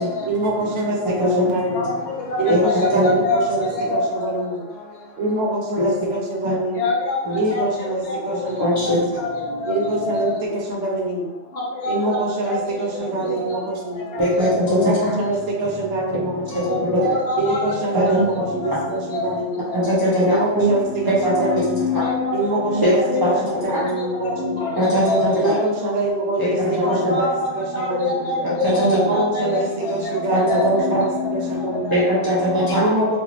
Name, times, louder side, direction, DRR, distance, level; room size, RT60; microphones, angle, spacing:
voice 1, 0.3-1.9 2.4-4.6 5.2-6.9 7.3-9.0 9.7-11.3 11.9-14.1 14.7-16.8 17.4-19.6 20.3-21.9 22.3-24.7 25.4-28.3 28.9-32.0 32.8-33.2, right 2 dB, 75° right, -1 dB, 1.0 m, -25 dB
voice 2, 1.7-4.0 6.8-7.2 7.5-7.6 8.1-8.2 9.2-9.3 9.6-9.7 10.0-10.2 11.6-12.2 12.5-12.6 13.5-13.6 14.1-14.8 15.3-15.4 16.7-17.8 18.1-18.2 18.6-18.7 19.1-19.2 22.0-22.4 23.1-23.3 24.2-24.3 24.6-24.7 25.0-25.2 26.8-27.5 27.7-29.4 30.0-30.2 30.5-30.8 31.9-32.0 32.9-33.2, left 2 dB, 70° left, -1 dB, 0.9 m, -25 dB
voice 3, 2.5-3.1 5.8-5.9 6.5-6.6 7.3-7.4 8.6-9.0 14.2-14.8 15.1-15.2 16.9-17.0 18.1-18.2 19.7-20.7 21.2-22.1 22.8-22.9 23.2-23.3 24.8-25.6 26.4-26.5 26.8-27.3 28.4-29.2 30.3-30.4 30.8-31.0 31.9-32.9, equal, 35° right, -8 dB, 0.3 m, -20 dB
2.5 x 2.4 x 3.1 m, 1.1 s
omnidirectional pair, 1.3 m